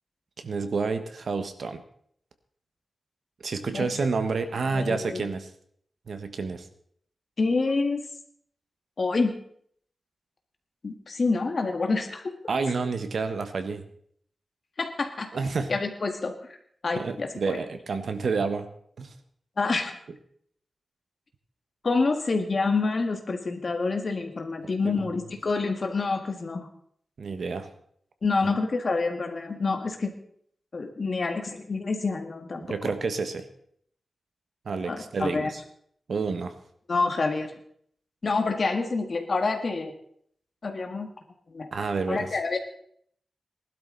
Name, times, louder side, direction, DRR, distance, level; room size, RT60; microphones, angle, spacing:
voice 1, 0.4-1.8 3.4-5.5 6.1-6.7 12.5-13.8 15.3-15.7 16.9-18.7 19.0-19.1 24.8-25.1 27.2-27.7 28.4-28.5 32.6-33.5 34.6-35.6 36.1-36.6 41.7-42.3, right 4 dB, 65° right, 8 dB, 1.3 m, -29 dB
voice 2, 4.7-5.2 7.4-8.0 9.0-9.3 10.8-12.3 14.8-15.3 15.7-16.6 16.8-17.6 19.6-19.9 21.8-26.7 28.2-30.1 30.7-32.9 34.9-35.5 36.9-37.5 38.2-39.9 40.6-41.1 41.5-41.7 42.1-42.6, left 3 dB, 45° left, 5 dB, 1.9 m, -27 dB
19.5 x 12.0 x 4.0 m, 0.64 s
wide cardioid pair, 170°, 0 cm